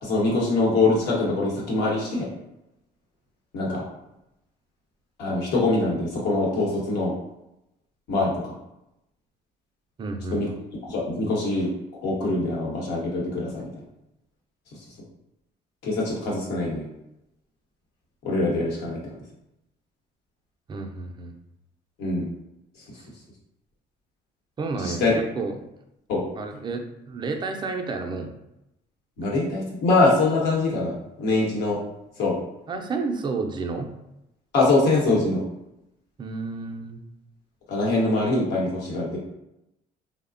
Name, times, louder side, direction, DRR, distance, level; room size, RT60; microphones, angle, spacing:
voice 1, 0.0-2.3 3.5-3.8 5.2-7.1 8.1-8.5 10.3-10.5 10.8-11.7 12.0-13.7 15.8-16.9 18.2-19.2 22.0-22.3 24.7-25.1 26.1-26.2 29.2-31.8 32.2-32.3 34.5-35.4 37.7-39.2, left 2 dB, 85° left, -4 dB, 0.9 m, -23 dB
voice 2, 10.0-10.4 20.7-21.3 24.6-25.5 26.4-28.3 32.7-33.9 36.2-37.1, right 3 dB, 25° right, 4 dB, 0.4 m, -31 dB
3.1 x 2.1 x 2.5 m, 0.88 s
cardioid pair, 110°, 17 cm